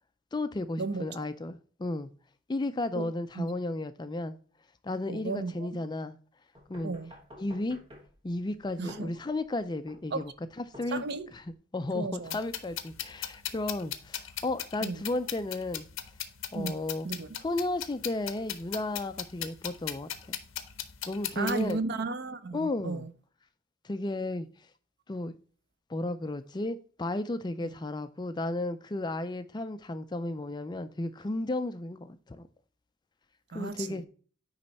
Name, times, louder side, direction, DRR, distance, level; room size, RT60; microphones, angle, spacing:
voice 1, 0.3-2.1 2.5-4.4 4.8-6.2 6.7-6.9 7.4-7.8 8.2-10.3 10.6-11.0 11.3-11.4 11.7-15.9 16.5-17.1 17.4-20.4 21.1-21.8 22.5-23.0 23.8-24.5 25.1-25.3 25.9-32.4 33.5-34.0, left 2 dB, 20° left, 0.4 m, -33 dB
voice 2, 5.1-5.7 6.8-7.1 8.8-9.1 10.1-10.2 10.9-11.3 11.9-12.4 14.8-15.0 16.5-17.4 21.4-23.1 27.6-27.7 33.5-34.1, right 3 dB, 50° right, 0.6 m, -34 dB
sound 1, 6.5-11.5, left 1 dB, 25° right, 1.8 m, -53 dB
sound 2, 12.3-21.7, left 10 dB, 70° left, 0.8 m, -38 dB
9.6 x 3.2 x 4.0 m
head